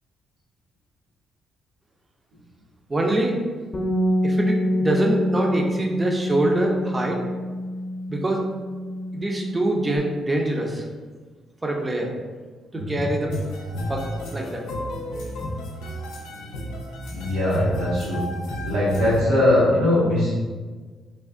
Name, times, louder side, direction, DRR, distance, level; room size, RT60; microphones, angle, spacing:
voice 1, 2.9-3.3 4.2-7.2 8.1-8.4 9.1-10.8 11.6-12.1 12.7-13.3 13.9-14.0 14.3-14.6, right 1 dB, 20° right, 0 dB, 0.6 m, -24 dB
Bass guitar, 3.7-10.0, left 1 dB, 25° left, 0.9 m, -26 dB
sound 1, 13.3-19.2, left 1 dB, 90° left, 0.5 m, -32 dB
voice 2, 17.1-18.2 18.6-20.3, left 1 dB, 90° right, -7 dB, 1.4 m, -21 dB
3.4 x 2.3 x 3.6 m, 1.4 s
cardioid pair, 90°, 0 cm